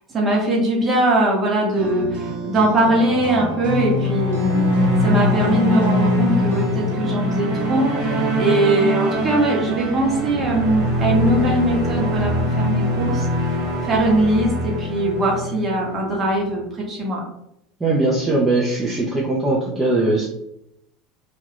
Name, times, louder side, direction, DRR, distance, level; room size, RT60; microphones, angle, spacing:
voice 1, 0.1-4.7 5.0-13.3 13.9-17.2, right 1 dB, 30° right, -2 dB, 1.1 m, -21 dB
sound 1, 1.8-12.2, left 3 dB, 75° right, 0.7 m, -29 dB
sound 2, 3.8-16.3, equal, 55° right, 1.1 m, -23 dB
voice 2, 17.8-20.3, right 2 dB, 15° right, -5 dB, 0.7 m, -20 dB
2.5 x 2.2 x 3.4 m, 0.78 s
hypercardioid pair, 80°, 0 cm